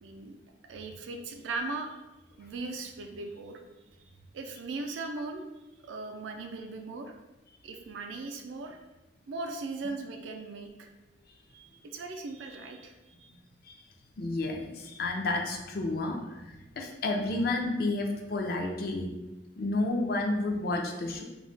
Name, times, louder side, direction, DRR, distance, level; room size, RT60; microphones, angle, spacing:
voice 1, 0.0-0.4 0.7-2.0 2.4-3.6 4.3-5.4 5.8-7.2 7.6-8.8 9.3-10.9 11.5-13.3, right 3 dB, 85° right, 4 dB, 0.4 m, -38 dB
voice 2, 14.2-19.1 19.6-21.2, left 2 dB, 55° left, 3 dB, 0.4 m, -31 dB
2.3 x 2.1 x 3.7 m, 1.1 s
head